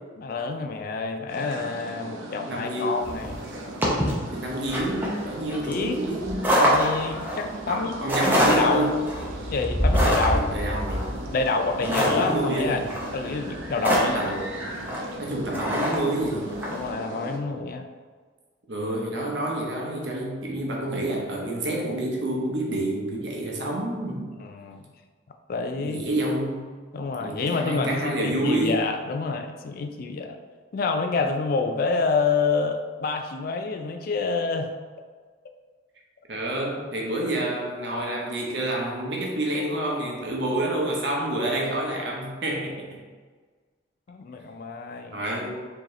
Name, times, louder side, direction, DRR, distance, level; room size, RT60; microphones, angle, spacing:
voice 1, 0.2-3.4 5.5-6.0 6.6-8.9 9.5-10.5 11.3-14.4 16.7-17.9 24.4-24.8 25.5-26.1 26.9-30.4 30.7-34.7 44.1-45.2, left 4 dB, 45° left, 6 dB, 0.3 m, -28 dB
sound 1, 1.3-17.4, right 1 dB, 85° right, 0.6 m, -39 dB
voice 2, 2.5-3.0 4.3-6.5 7.7-9.1 10.3-11.1 11.8-12.8 14.1-16.5 18.7-24.2 25.8-26.7 27.2-28.9 36.3-43.0 45.1-45.5, right 1 dB, 60° right, -1 dB, 0.8 m, -28 dB
sound 2, 3.0-16.8, equal, 10° right, 0.6 m, -26 dB
4.6 x 2.9 x 3.1 m, 1.5 s
head